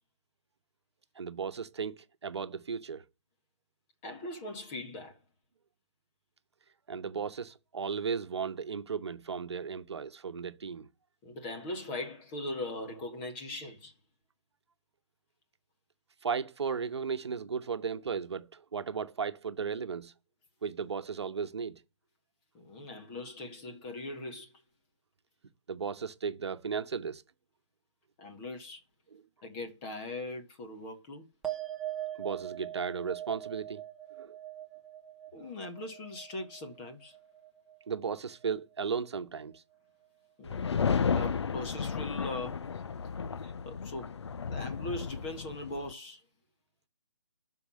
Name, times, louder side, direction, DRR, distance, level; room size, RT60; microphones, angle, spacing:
voice 1, 1.1-3.0 6.9-10.9 16.2-20.1 20.6-21.8 25.7-27.2 29.1-29.2 32.2-33.8 34.2-34.4 37.9-39.6, right 6 dB, 65° right, 1.1 m, -35 dB
voice 2, 4.0-5.2 11.2-13.9 22.5-24.5 28.2-28.8 29.4-31.6 35.3-37.2 40.4-42.6 43.4-44.1 44.5-46.2, left 2 dB, 20° left, 1.7 m, -40 dB
sound 1, 31.4-38.1 38.4-39.1, right 13 dB, 5° right, 0.7 m, -42 dB
sound 2, 40.5-45.9, left 6 dB, 65° left, 0.6 m, -33 dB
12.0 x 4.8 x 8.5 m
hypercardioid pair, 160°, 15 cm